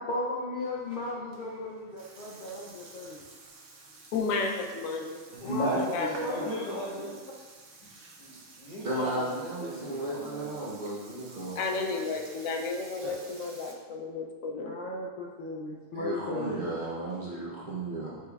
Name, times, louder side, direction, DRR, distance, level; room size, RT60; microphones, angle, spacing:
voice 1, 0.0-3.2 5.4-5.8 6.1-6.5 14.5-16.7, left 2 dB, 60° left, -4 dB, 0.6 m, -36 dB
Burping eructation, 0.6-13.7, right 2 dB, 70° right, 1.0 m, -50 dB
voice 2, 4.1-5.2 5.7-6.5 11.6-14.7, left 4 dB, 85° left, 3 dB, 1.0 m, -33 dB
voice 3, 5.3-7.1 8.2-10.9, equal, 35° left, -7 dB, 1.2 m, -35 dB
voice 4, 8.8-12.2 15.9-18.2, right 1 dB, 50° right, -7 dB, 0.7 m, -35 dB
6.0 x 3.3 x 2.3 m, 1.4 s
omnidirectional pair, 1.4 m